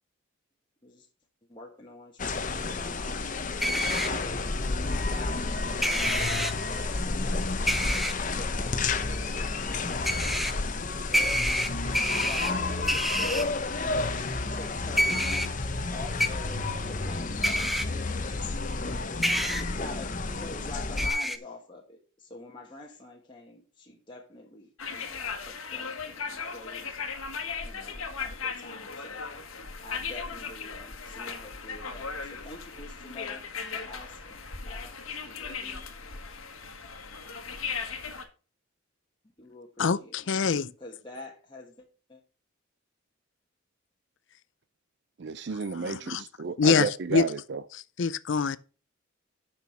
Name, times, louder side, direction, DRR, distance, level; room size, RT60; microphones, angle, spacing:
voice 1, 1.5-3.3 4.0-5.4 6.2-10.4 11.1-11.4 12.2-15.5 15.9-16.6 17.0-17.4 19.6-22.0 22.3-27.1 27.6-29.2 29.8-32.2 32.4-33.4 33.7-34.4 34.7-34.9 35.3-35.8 39.4-40.1 40.8-41.7, left 2 dB, 25° left, 1.3 m, -46 dB
sound 1, 2.2-21.1, left 3 dB, 40° left, 0.8 m, -31 dB
sound 2, 3.6-4.1 5.8-6.5 7.7-8.1 10.0-10.5 11.1-12.5 12.9-13.4 15.0-15.5 16.2-16.3 17.4-17.8 19.2-19.6 21.0-21.4, equal, ahead, 0.5 m, -27 dB
sound 3, 24.8-38.2, left 5 dB, 85° left, 1.4 m, -37 dB
voice 2, 39.8-40.7 45.7-46.2 46.6-47.3 47.7-48.6, left 5 dB, 65° left, 0.5 m, -25 dB
voice 3, 45.2-47.6, right 4 dB, 55° right, 0.4 m, -32 dB
7.0 x 6.2 x 5.9 m
head